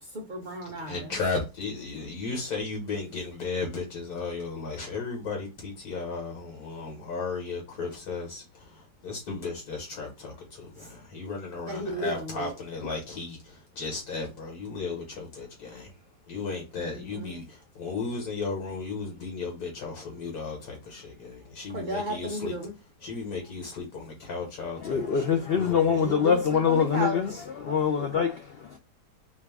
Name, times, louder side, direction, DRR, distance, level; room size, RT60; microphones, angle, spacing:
voice 1, 0.0-1.2 10.8-10.9 11.6-12.9 16.7-17.4 21.7-22.8 25.9-27.4, equal, 50° right, 0.5 m, -34 dB
voice 2, 0.9-15.9 16.3-22.5 23.0-26.1, left 4 dB, 70° left, 1.8 m, -35 dB
voice 3, 24.8-27.3 27.6-28.8, left 7 dB, 90° left, 0.5 m, -24 dB
4.4 x 2.4 x 3.4 m
omnidirectional pair, 1.7 m